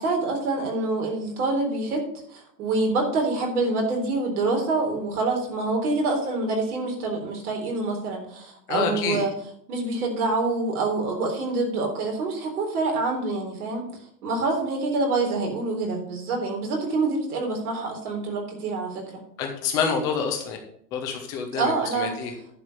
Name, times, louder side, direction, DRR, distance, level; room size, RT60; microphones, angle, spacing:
voice 1, 0.0-2.0 2.3-9.3 9.7-13.8 14.2-19.2 21.6-22.1, right 3 dB, 60° right, 1 dB, 4.1 m, -26 dB
voice 2, 8.7-9.2 19.4-20.6 20.9-22.3, left 6 dB, 10° left, 4 dB, 0.3 m, -27 dB
11.0 x 4.7 x 7.3 m, 0.67 s
hypercardioid pair, 120°, 50 cm